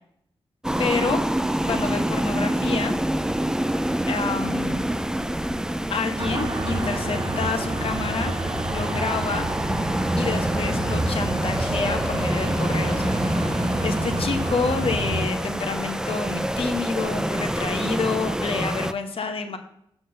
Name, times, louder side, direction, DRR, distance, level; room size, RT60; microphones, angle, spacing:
sound 1, 0.6-18.9, right 1 dB, 5° right, 0.4 m, -27 dB
voice 1, 0.8-1.2 1.6-2.9 4.1-4.8 5.9-8.3 8.7-9.5 10.2-13.0 13.8-19.6, left 4 dB, 65° left, 6 dB, 1.1 m, -28 dB
sound 2, 6.2-15.3, right 1 dB, 45° right, 1.7 m, -29 dB
7.6 x 3.9 x 6.5 m, 0.73 s
cardioid pair, 65°, 10 cm